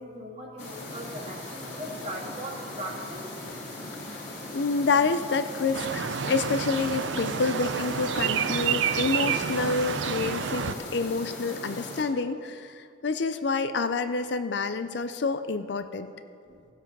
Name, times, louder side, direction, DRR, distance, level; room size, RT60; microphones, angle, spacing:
voice 1, 0.0-3.5 16.5-16.6, equal, 35° right, -2 dB, 1.9 m, -39 dB
sound 1, 0.6-12.0, left 1 dB, 35° left, 2.3 m, -39 dB
voice 2, 4.5-16.1, left 4 dB, 60° left, 10 dB, 0.5 m, -28 dB
sound 2, 5.7-10.7, right 7 dB, 70° right, 0.5 m, -29 dB
16.0 x 7.5 x 5.4 m, 2.4 s
head